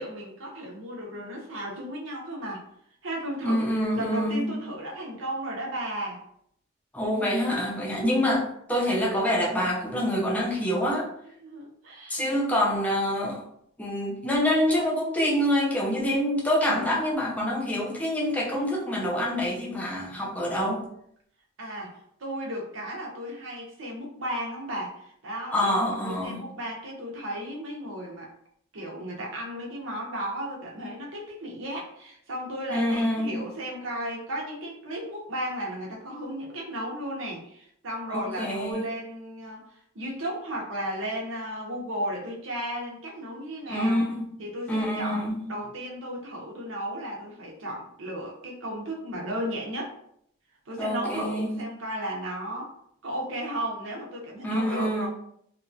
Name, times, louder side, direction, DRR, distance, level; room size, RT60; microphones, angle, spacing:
voice 1, 0.0-2.6 3.0-6.2 11.4-12.4 21.6-28.3 28.7-39.6 39.9-44.0 44.4-50.0 50.7-52.7 53.0-55.1, right 1 dB, 75° right, -2 dB, 0.7 m, -34 dB
voice 2, 3.4-4.6 6.9-11.1 12.1-13.4 13.8-20.9 25.5-26.4 32.7-33.4 38.1-38.9 43.7-44.2 44.7-45.5 50.8-51.6 54.4-55.1, equal, 5° left, -3 dB, 0.5 m, -26 dB
2.8 x 2.2 x 2.6 m, 0.70 s
head